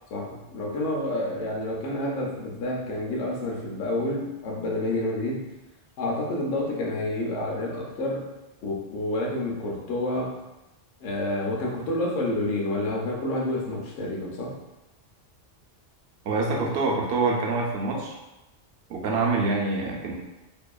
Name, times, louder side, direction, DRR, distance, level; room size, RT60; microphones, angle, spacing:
voice 1, 0.1-5.5 6.0-8.3 8.6-10.4 11.0-14.5, left 1 dB, 80° left, -1 dB, 0.9 m, -29 dB
voice 2, 16.2-18.2 18.9-20.1, right 3 dB, 70° right, -1 dB, 0.8 m, -25 dB
2.7 x 2.3 x 2.3 m, 0.99 s
omnidirectional pair, 1.2 m